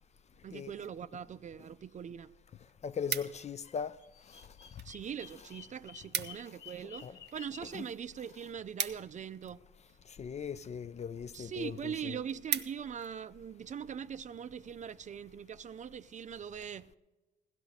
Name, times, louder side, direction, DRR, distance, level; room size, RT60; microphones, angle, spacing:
voice 1, 0.4-2.3 4.8-9.6 11.3-16.9, right 8 dB, 40° right, 0.4 m, -42 dB
sound 1, 1.9-2.0 2.3-3.7 4.4-4.9 5.2-5.3 5.6-5.7 5.9-6.5 6.9-9.7 10.5-10.8 11.3-11.4 11.7-11.8 12.1-13.1 13.6-13.8, right 8 dB, 60° right, 0.7 m, -39 dB
voice 2, 2.8-4.0 4.3-4.4 6.2-6.3 7.0-7.2 7.7-7.9 10.2-12.2, left 7 dB, 35° left, 0.4 m, -39 dB
Bird vocalization bird call bird song, 4.0-7.8, left 9 dB, 65° left, 0.9 m, -53 dB
16.5 x 11.5 x 4.0 m
cardioid pair, 90°, 20 cm